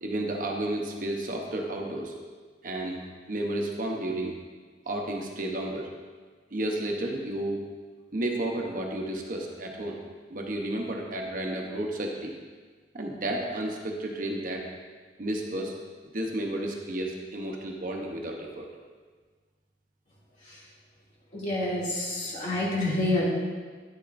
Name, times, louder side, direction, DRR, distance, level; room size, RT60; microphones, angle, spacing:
voice 1, 0.0-2.1 2.6-3.0 3.3-4.3 4.9-5.9 6.5-7.6 8.1-10.0 10.3-12.3 12.9-14.6 15.2-15.7 16.0-18.7, right 1 dB, 50° right, 1 dB, 0.9 m, -32 dB
voice 2, 21.3-23.2, left 2 dB, 45° left, -7 dB, 2.6 m, -28 dB
10.5 x 7.2 x 2.6 m, 1.5 s
head